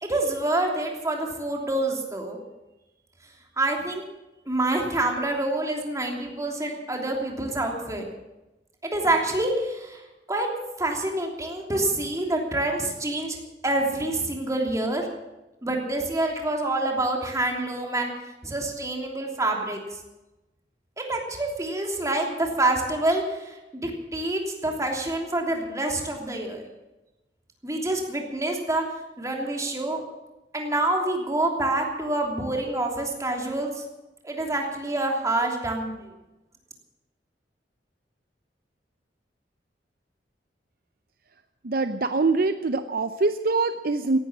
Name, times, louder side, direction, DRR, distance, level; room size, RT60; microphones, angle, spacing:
voice 1, 0.0-2.4 3.6-4.0 4.5-8.0 8.8-10.0 10.3-10.5 10.8-13.4 13.6-15.1 15.6-18.1 18.4-19.8 21.0-26.6 27.6-28.8 29.2-30.0 30.5-33.8 34.2-36.1, right 2 dB, 20° right, 1 dB, 3.1 m, -27 dB
voice 2, 41.6-44.2, right 3 dB, 55° right, 10 dB, 0.7 m, -24 dB
18.0 x 11.0 x 7.4 m, 1.0 s
head